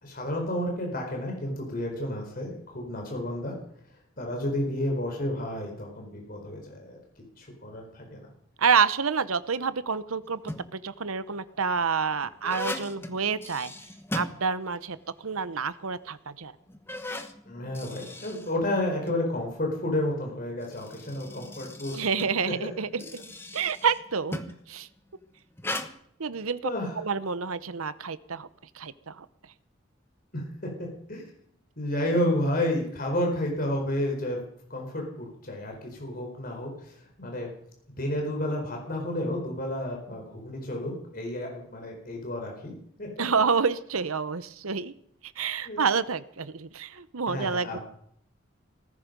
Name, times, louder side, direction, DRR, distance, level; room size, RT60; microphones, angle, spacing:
voice 1, 0.0-3.5 4.2-7.0 7.4-8.3 17.5-22.0 26.6-27.0 30.3-30.7 31.1-31.2 31.8-34.4 34.7-37.5 38.0-43.1 45.6-45.8 47.3-47.8, left 1 dB, 45° left, 1 dB, 4.5 m, -31 dB
voice 2, 8.6-10.4 10.7-13.7 14.1-16.5 21.9-23.0 23.5-24.4 24.7-24.9 26.2-28.5 28.7-29.3 43.2-44.9 45.4-47.8, right 5 dB, 90° right, 15 dB, 0.9 m, -28 dB
sound 1, 10.2-10.9 11.6-15.0 15.3-15.4 16.1-16.2 16.7-19.2 20.4-24.7 25.6-25.9, left 1 dB, 10° left, 1.0 m, -38 dB
18.5 x 15.0 x 5.3 m, 0.67 s
head